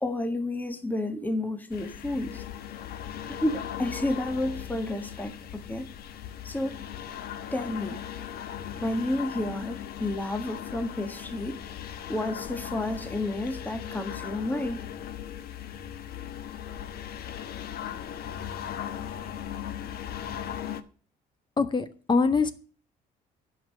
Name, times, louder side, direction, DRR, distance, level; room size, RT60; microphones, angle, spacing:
voice 1, 0.0-2.4 3.3-5.9 6.4-6.8 7.5-8.0 8.7-11.6 12.1-14.8, left 1 dB, 10° left, 1.6 m, -31 dB
sound 1, 1.7-20.8, left 10 dB, 65° left, 1.3 m, -38 dB
voice 2, 21.6-22.5, left 4 dB, 25° left, 1.4 m, -23 dB
12.0 x 5.7 x 9.0 m
cardioid pair, 110°, 17 cm